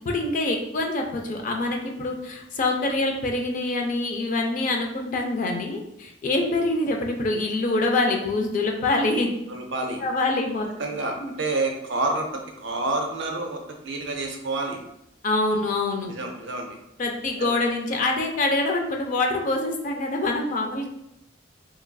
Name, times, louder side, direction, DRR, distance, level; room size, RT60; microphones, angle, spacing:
voice 1, 0.0-9.3 10.0-10.7 11.2-11.3 15.2-16.1 17.0-20.9, left 2 dB, 40° left, 2 dB, 0.4 m, -25 dB
voice 2, 9.5-10.0 10.8-14.8 16.0-16.8 17.4-17.5, right 2 dB, 70° right, 3 dB, 0.5 m, -28 dB
3.0 x 2.5 x 2.2 m, 0.81 s
head